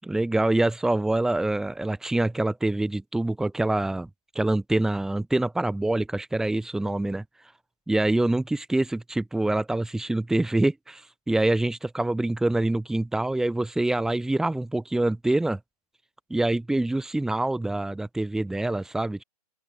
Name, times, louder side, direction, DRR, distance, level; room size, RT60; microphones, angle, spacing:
voice 1, 0.0-4.1 4.4-7.2 7.9-15.6 16.3-19.2, right 2 dB, ahead, 6.9 m, -25 dB
open air
hypercardioid pair, 160°, 20 cm